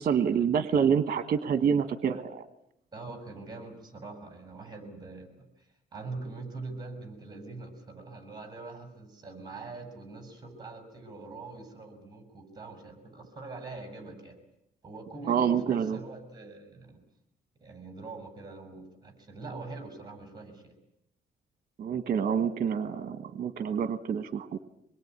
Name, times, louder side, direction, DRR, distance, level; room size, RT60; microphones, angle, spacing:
voice 1, 0.0-2.4 15.3-16.0 21.8-24.6, right 7 dB, 55° right, 10 dB, 1.3 m, -27 dB
voice 2, 2.9-14.4 14.8-17.0 17.6-20.7, right 3 dB, 25° right, 9 dB, 6.9 m, -43 dB
25.0 x 21.5 x 9.7 m, 0.78 s
cardioid pair, 125°, 16 cm